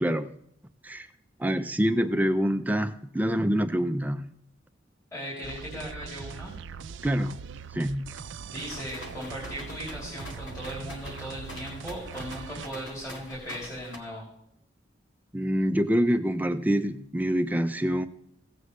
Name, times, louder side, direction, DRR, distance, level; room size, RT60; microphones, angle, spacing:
voice 1, 0.0-0.3 0.8-1.1 1.4-4.3 7.0-7.4 7.7-8.1 15.3-18.1, equal, 10° right, 8 dB, 0.4 m, -26 dB
voice 2, 5.1-6.5 8.1-14.3, equal, 20° left, -4 dB, 3.0 m, -38 dB
sound 1, 5.4-12.7, right 6 dB, 80° right, 0.5 m, -41 dB
sound 2, 8.6-14.0, left 1 dB, 85° left, 1.9 m, -45 dB
16.5 x 8.1 x 3.2 m, 0.72 s
head